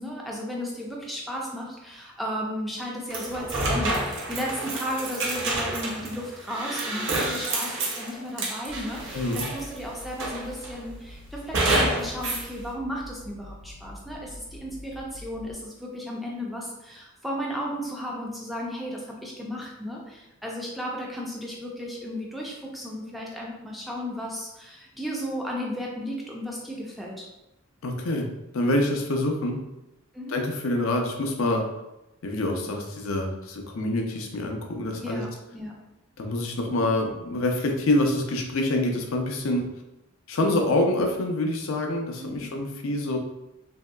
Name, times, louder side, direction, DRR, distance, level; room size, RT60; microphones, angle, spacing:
voice 1, 0.0-27.3 30.1-30.4 34.9-35.7 42.2-42.5, equal, ahead, -3 dB, 0.3 m, -34 dB
sound 1, 3.1-9.8 10.2-10.8 11.5-12.5, right 2 dB, 55° right, 0.6 m, -28 dB
sound 2, 8.7-15.5, left 1 dB, 80° right, 1.3 m, -45 dB
voice 2, 9.1-9.5 27.8-28.3 28.5-29.6 30.3-31.6 32.2-35.2 36.2-39.6 40.3-43.2, left 1 dB, 65° left, 3 dB, 0.5 m, -26 dB
3.0 x 2.7 x 2.2 m, 0.93 s
head